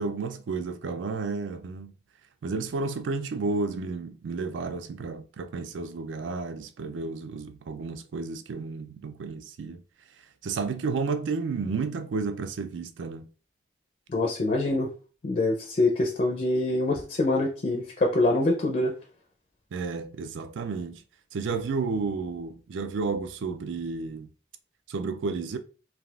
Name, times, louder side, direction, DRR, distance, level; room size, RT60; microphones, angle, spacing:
voice 1, 0.0-1.9 2.4-9.8 10.4-13.3 19.7-21.0 21.3-24.3 24.9-25.6, right 4 dB, 85° right, 0.4 m, -32 dB
voice 2, 14.1-14.9 15.2-18.9, left 2 dB, 40° left, 0.4 m, -25 dB
3.4 x 2.4 x 2.3 m
head